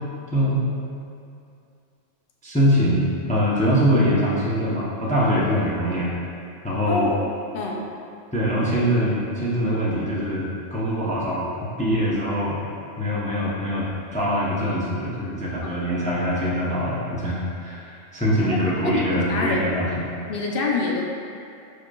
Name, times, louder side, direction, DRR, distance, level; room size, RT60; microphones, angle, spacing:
voice 1, 0.3-0.7 2.4-6.1 6.6-7.1 8.3-11.5 11.8-12.6 13.0-19.9, equal, 10° left, -7 dB, 0.3 m, -23 dB
voice 2, 6.9-7.2 7.5-7.9 15.6-15.8 18.5-19.7 20.3-21.0, left 2 dB, 60° left, -1 dB, 0.6 m, -25 dB
4.9 x 4.4 x 2.3 m, 2.5 s
omnidirectional pair, 1.3 m